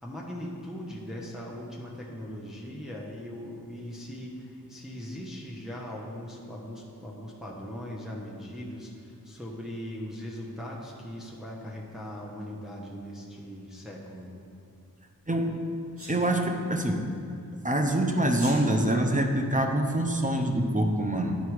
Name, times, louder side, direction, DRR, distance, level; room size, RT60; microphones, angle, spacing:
voice 1, 0.0-14.3, equal, ahead, -4 dB, 1.0 m, -39 dB
voice 2, 15.3-17.1 17.6-21.4, right 1 dB, 20° right, 3 dB, 0.7 m, -25 dB
Sneeze, 16.0-16.2 18.3-18.6, equal, 35° right, 2.0 m, -39 dB
10.0 x 4.6 x 4.7 m, 2.5 s
wide cardioid pair, 65°, 37 cm